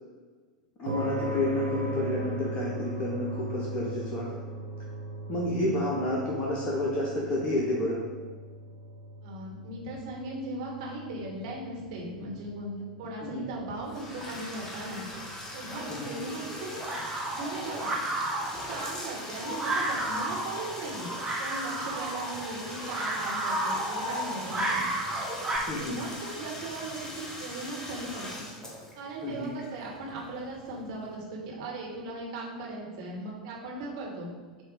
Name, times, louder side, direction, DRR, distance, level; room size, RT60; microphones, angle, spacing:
voice 1, 0.8-4.3 5.3-8.0 13.2-13.5 15.9-16.2 25.7-26.0 29.2-29.5, left 1 dB, 30° left, -3 dB, 1.1 m, -30 dB
sound 1, 0.9-17.4, right 1 dB, 75° right, 1.1 m, -40 dB
voice 2, 9.2-15.1 15.5-17.0 17.3-17.9 18.5-24.9 25.7-28.5 28.9-34.3, right 2 dB, 55° right, -3 dB, 1.9 m, -38 dB
Bathtub (filling or washing), 13.8-30.6, left 1 dB, 15° left, 1.6 m, -41 dB
sound 2, 15.7-25.6, right 1 dB, 10° right, 1.4 m, -33 dB
7.7 x 3.1 x 5.0 m, 1.5 s
figure-of-eight pair, 85°, 4 cm